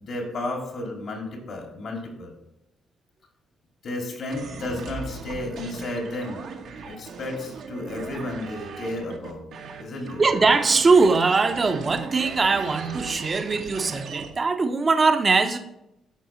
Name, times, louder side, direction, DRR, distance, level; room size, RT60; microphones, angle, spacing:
voice 1, 0.0-2.4 3.8-6.5 6.8-9.4 9.8-10.2, left 2 dB, 60° left, 1 dB, 2.3 m, -32 dB
sound 1, 4.3-14.3, right 4 dB, 75° right, 1.2 m, -38 dB
voice 2, 10.2-15.6, right 4 dB, 35° right, 7 dB, 0.8 m, -21 dB
13.0 x 4.7 x 3.1 m, 0.83 s
cardioid pair, 90°, 0 cm